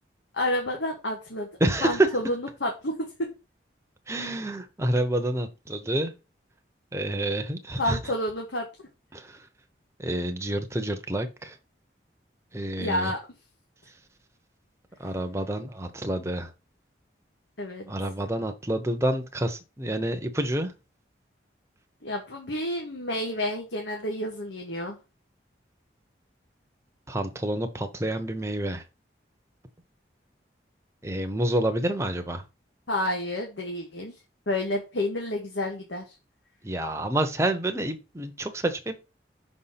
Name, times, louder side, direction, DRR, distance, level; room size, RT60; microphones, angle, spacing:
voice 1, 0.3-1.5 1.8-3.3 7.8-8.7 12.8-13.2 17.6-17.9 22.0-25.0 32.9-34.2 34.5-36.1, left 1 dB, 80° left, 1.4 m, -30 dB
voice 2, 1.6-2.1 4.1-6.1 6.9-8.0 9.1-9.5 10.0-11.6 12.5-13.1 15.0-16.5 17.9-20.7 27.1-28.8 31.0-32.4 36.6-39.0, right 1 dB, 15° right, 0.8 m, -28 dB
6.0 x 4.3 x 5.7 m
head